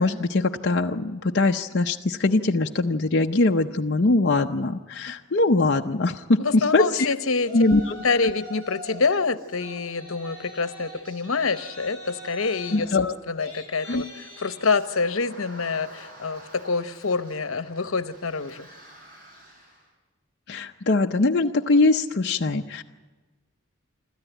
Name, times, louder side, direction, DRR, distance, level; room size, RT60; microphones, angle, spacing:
voice 1, 0.0-7.1 7.5-8.0 12.7-13.5 13.9-14.0 20.5-22.8, left 2 dB, 50° left, 2 dB, 0.6 m, -22 dB
voice 2, 6.4-7.5 7.9-18.7, left 4 dB, 80° left, 12 dB, 0.9 m, -26 dB
Yell, 7.4-9.0 9.4-19.8, equal, 40° right, 5.2 m, -44 dB
26.0 x 13.5 x 9.1 m, 1.3 s
head